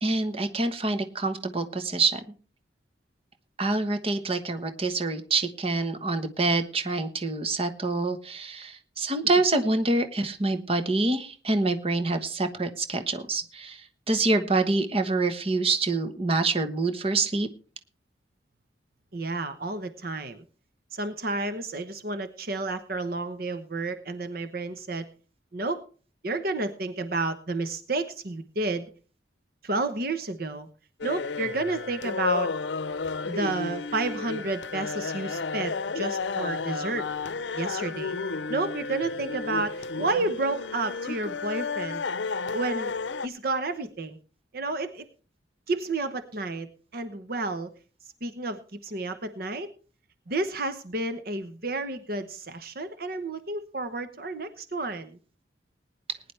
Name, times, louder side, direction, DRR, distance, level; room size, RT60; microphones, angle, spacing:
voice 1, 0.0-2.2 3.6-17.5, right 3 dB, 30° right, 9 dB, 1.2 m, -26 dB
voice 2, 19.1-20.4 20.9-25.0 25.5-25.8 26.2-28.9 29.6-30.7 31.0-32.5 33.2-37.1 37.5-38.2 38.5-42.0 42.5-42.9 43.2-44.2 44.5-45.1 45.7-46.7 46.9-47.7 48.2-49.7 50.3-55.2, right 2 dB, 55° right, 10 dB, 1.0 m, -31 dB
sound 1, 31.0-43.3, left 4 dB, 85° left, 0.6 m, -32 dB
20.0 x 10.0 x 3.3 m, 0.38 s
head